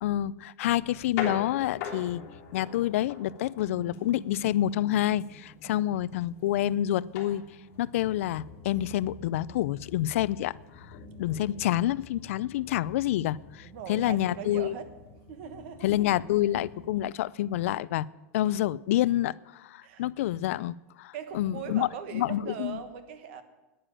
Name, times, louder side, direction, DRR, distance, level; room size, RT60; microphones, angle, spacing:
voice 1, 0.0-2.2 2.5-7.4 7.8-14.7 15.8-18.1 18.3-21.9 22.1-22.8, left 13 dB, 70° left, 20 dB, 0.4 m, -28 dB
sound 1, 0.8-16.9, left 5 dB, 35° left, 3.3 m, -44 dB
voice 2, 13.6-14.9 15.3-15.9 19.8-20.0 21.1-23.4, right 8 dB, 50° right, 10 dB, 1.3 m, -40 dB
10.0 x 10.0 x 8.9 m, 1.1 s
supercardioid pair, 175°, 8 cm